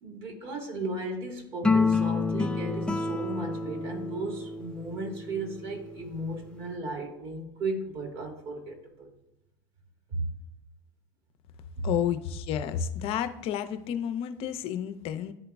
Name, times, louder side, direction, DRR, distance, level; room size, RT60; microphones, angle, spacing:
voice 1, 0.0-9.1 10.1-10.3 11.7-11.9, right 2 dB, 50° right, 2 dB, 1.9 m, -35 dB
sound 1, 1.6-6.1, left 3 dB, 10° left, 0.4 m, -29 dB
voice 2, 11.8-15.3, left 9 dB, 55° left, 10 dB, 0.6 m, -31 dB
10.5 x 3.8 x 2.3 m, 0.87 s
hypercardioid pair, 85°, 12 cm